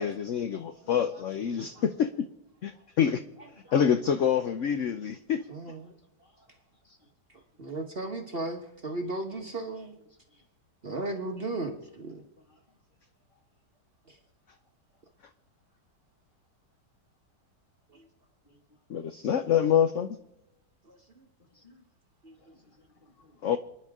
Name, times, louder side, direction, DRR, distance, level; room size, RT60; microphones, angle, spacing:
voice 1, 0.0-2.3 2.6-3.2 3.7-5.5 18.9-20.2 23.4-23.6, left 8 dB, 65° left, 0.8 m, -26 dB
voice 2, 1.5-1.8 2.7-2.8 6.2-6.5 6.8-7.1 8.8-8.9 9.9-10.0 10.3-10.4 11.9-12.6 18.5-18.6 19.4-19.5 21.5-21.8 22.4-23.4, left 2 dB, 25° left, 2.0 m, -60 dB
voice 3, 5.5-5.9 7.6-9.9 10.8-12.2, right 2 dB, 35° right, 1.4 m, -35 dB
28.5 x 10.0 x 3.6 m
omnidirectional pair, 2.0 m